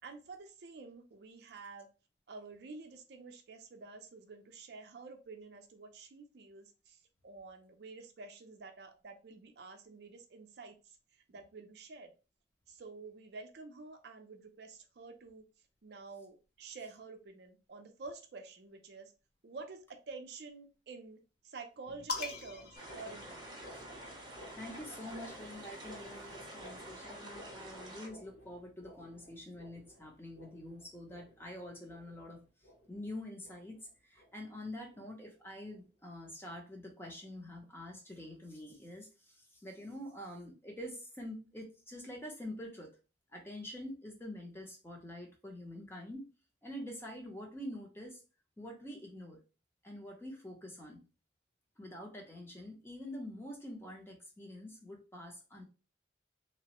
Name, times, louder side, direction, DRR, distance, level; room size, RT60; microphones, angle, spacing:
voice 1, 0.0-1.9 2.3-7.0 7.2-10.8 11.3-12.1 12.7-15.4 15.8-19.1 19.4-21.2 21.4-23.5, right 4 dB, 60° right, 5 dB, 0.4 m, -49 dB
sound 1, 21.8-34.6 34.9-35.2 35.7-36.0 36.4-36.6 37.2-37.3 37.9-38.0, equal, 90° left, 1.2 m, -56 dB
sound 2, 22.1-23.9 25.0-26.7, left 3 dB, 55° left, 0.5 m, -44 dB
sound 3, 22.7-28.1, right 1 dB, 25° right, 0.7 m, -48 dB
voice 2, 24.6-32.4 32.9-33.8 34.0-42.9 43.3-46.3 46.6-48.2 48.6-49.4 49.8-51.0 51.8-55.6, left 1 dB, 15° left, 0 dB, 0.6 m, -46 dB
2.9 x 2.0 x 2.9 m, 0.32 s
head